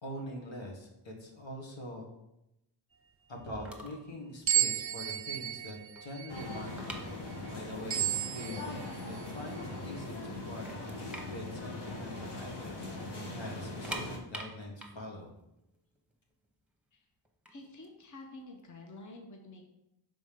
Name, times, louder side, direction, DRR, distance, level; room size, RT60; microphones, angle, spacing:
voice 1, 0.0-2.1 3.3-6.9 7.4-15.3, left 1 dB, 80° left, 0 dB, 1.6 m, -44 dB
sound 1, 3.7-4.1 4.4-4.6 5.1-5.2 5.5-7.8 8.0-8.1 8.8-8.9 9.2-9.9 10.3-10.4 10.7-12.6 12.9-13.0 13.6-16.5 17.3-19.0, right 1 dB, 5° right, 1.0 m, -45 dB
sound 2, 4.5-9.3, right 12 dB, 35° right, 0.4 m, -34 dB
sound 3, 6.3-14.2, left 2 dB, 65° left, 1.5 m, -41 dB
voice 2, 17.5-19.7, left 2 dB, 40° left, 2 dB, 1.0 m, -49 dB
5.2 x 4.2 x 5.1 m, 0.87 s
cardioid pair, 65°, 45 cm